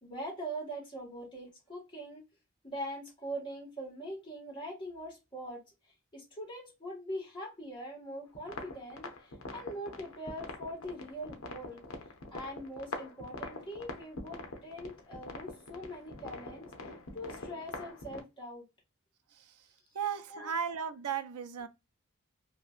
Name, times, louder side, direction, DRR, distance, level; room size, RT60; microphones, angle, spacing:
voice 1, 0.0-2.2 2.6-5.6 6.1-11.8 12.3-18.6 20.3-20.5, equal, 20° left, 1.5 m, -42 dB
sound 1, 8.3-18.2, left 2 dB, 65° left, 0.7 m, -44 dB
voice 2, 19.9-21.7, right 7 dB, 85° right, 0.4 m, -35 dB
2.8 x 2.5 x 2.4 m
head